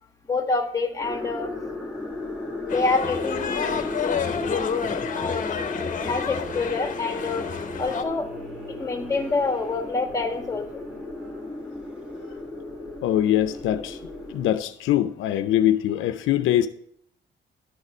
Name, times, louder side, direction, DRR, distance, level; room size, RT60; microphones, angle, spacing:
voice 1, 0.3-1.5 2.6-3.9 5.1-5.5 6.0-7.4 7.8-8.3 8.8-10.8, left 3 dB, 15° left, 4 dB, 1.4 m, -27 dB
sound 1, 1.0-14.5, left 2 dB, 5° right, 1.3 m, -35 dB
sound 2, 2.7-8.0, left 6 dB, 40° left, 0.8 m, -29 dB
sound 3, 6.7-12.4, right 2 dB, 90° right, 3.0 m, -48 dB
voice 2, 13.0-14.0 14.3-16.7, left 12 dB, 80° left, 10 dB, 0.5 m, -22 dB
11.5 x 4.1 x 4.9 m, 0.68 s
cardioid pair, 90°, 20 cm